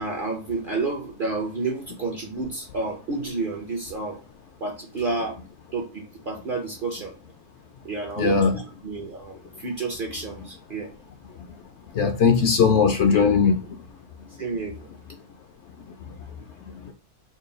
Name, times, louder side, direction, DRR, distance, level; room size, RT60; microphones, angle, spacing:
voice 1, 0.0-4.2 4.6-5.4 5.7-7.1 7.8-10.9 14.4-14.9, right 3 dB, 50° right, 0.6 m, -30 dB
voice 2, 8.2-8.5 11.9-13.6, left 5 dB, 65° left, 0.8 m, -19 dB
3.8 x 2.3 x 3.8 m
omnidirectional pair, 1.5 m